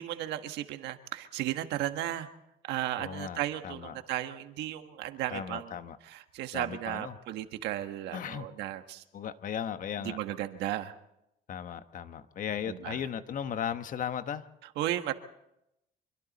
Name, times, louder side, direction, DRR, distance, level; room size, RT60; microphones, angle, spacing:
voice 1, 0.0-2.3 2.7-5.8 6.0-9.0 10.0-10.9 12.7-13.0 14.8-15.1, right 13 dB, 85° right, 8 dB, 1.5 m, -35 dB
voice 2, 3.0-4.0 5.3-6.0 6.5-7.2 8.1-8.5 9.1-10.2 11.5-14.4, left 8 dB, 50° left, 10 dB, 1.3 m, -36 dB
26.0 x 24.0 x 4.2 m, 0.84 s
cardioid pair, 110°, 17 cm